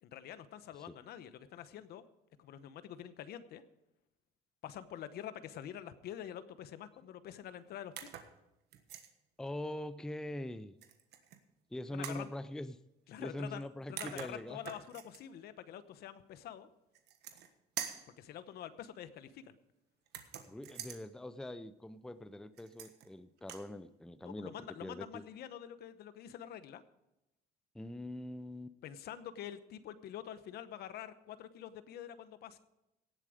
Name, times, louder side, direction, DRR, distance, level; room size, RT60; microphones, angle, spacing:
voice 1, 0.0-2.0 2.4-3.6 4.6-7.9 11.9-12.3 13.1-16.7 18.2-19.6 24.2-26.8 28.8-32.6, left 10 dB, 70° left, 13 dB, 0.9 m, -46 dB
sound 1, 8.0-8.3 8.7-9.1 10.8-11.4 12.0-12.3 13.6-13.7 14.0-15.2 16.9-17.5 17.8-18.1 20.1-21.0 22.6-23.1 23.4-23.7, right 9 dB, 75° right, 1.4 m, -45 dB
voice 2, 9.4-10.8 11.7-12.8 13.2-14.6 20.5-25.2 27.7-28.8, left 1 dB, 5° left, 14 dB, 0.5 m, -43 dB
17.5 x 7.6 x 5.0 m, 0.91 s
cardioid pair, 110°, 17 cm